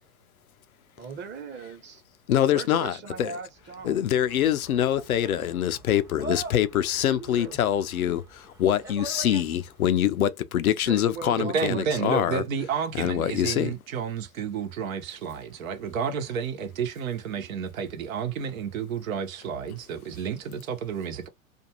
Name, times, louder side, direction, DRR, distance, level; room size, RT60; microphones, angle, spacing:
voice 1, 1.0-2.0 2.5-4.0 7.0-7.6 10.9-11.9, right 5 dB, 25° right, 1.0 m, -39 dB
voice 2, 2.3-3.3 3.8-12.4 13.0-13.7, left 10 dB, 80° left, 0.6 m, -24 dB
sound 1, 3.6-9.9, right 2 dB, 5° right, 0.7 m, -43 dB
voice 3, 11.4-21.3, right 7 dB, 70° right, 1.0 m, -31 dB
2.5 x 2.2 x 2.9 m
hypercardioid pair, 95°, 43 cm